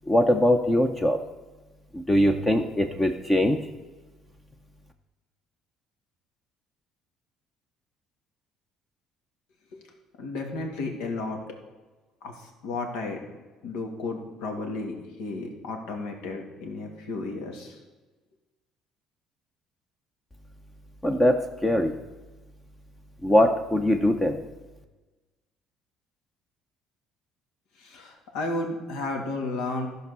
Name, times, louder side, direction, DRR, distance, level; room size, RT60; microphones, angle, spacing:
voice 1, 0.1-1.2 1.9-3.6 21.0-21.9 23.2-24.4, left 1 dB, 15° left, 5 dB, 0.6 m, -22 dB
voice 2, 10.2-11.4 12.2-13.2 13.6-17.8 27.8-29.9, left 2 dB, 85° left, 3 dB, 2.2 m, -33 dB
14.0 x 5.4 x 6.8 m, 1.2 s
cardioid pair, 135°, 0 cm